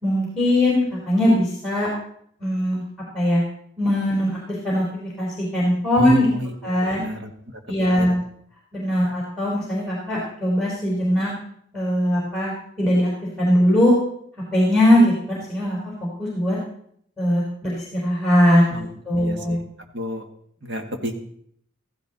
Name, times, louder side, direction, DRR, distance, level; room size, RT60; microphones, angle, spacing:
voice 1, 0.0-1.9 2.4-2.8 3.1-3.4 3.8-6.3 6.6-7.0 7.7-8.2 8.7-11.3 11.7-13.1 13.4-14.0 14.5-15.8 16.2-16.6 17.2-19.6, equal, 5° left, -5 dB, 4.3 m, -20 dB
voice 2, 6.0-7.3 8.0-8.2 18.7-18.9 19.2-19.6 19.9-20.3 20.6-21.1, equal, 55° right, 4 dB, 2.0 m, -32 dB
16.0 x 15.0 x 4.2 m, 0.66 s
head